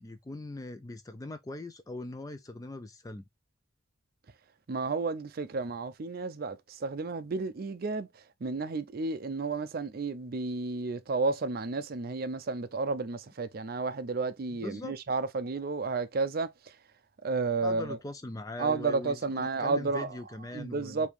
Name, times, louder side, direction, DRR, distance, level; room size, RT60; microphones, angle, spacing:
voice 1, 0.0-3.2 14.6-15.0 17.6-21.1, left 2 dB, 15° left, 0.4 m, -41 dB
voice 2, 4.7-16.8 17.2-18.0 18.6-20.2 20.5-21.1, right 3 dB, 45° right, 0.4 m, -32 dB
5.0 x 2.7 x 3.2 m
head